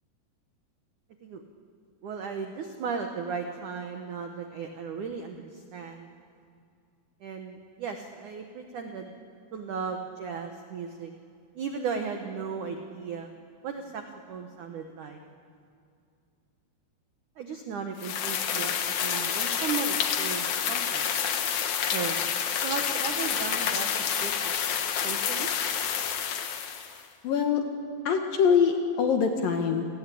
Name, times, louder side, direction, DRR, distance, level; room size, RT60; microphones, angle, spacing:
voice 1, 2.0-6.1 7.2-9.1 9.5-11.1 11.6-13.3 13.6-14.0 14.3-15.2 17.4-18.7 19.0-21.0 21.9-22.3 22.6-23.9 24.2-24.6 25.0-25.5, right 5 dB, 75° right, 5 dB, 1.8 m, -35 dB
sound 1, 18.0-27.0, left 8 dB, 80° left, 1.6 m, -28 dB
voice 2, 27.2-27.6 28.1-29.8, left 6 dB, 60° left, 4 dB, 2.6 m, -23 dB
29.0 x 18.5 x 8.5 m, 2.4 s
omnidirectional pair, 5.5 m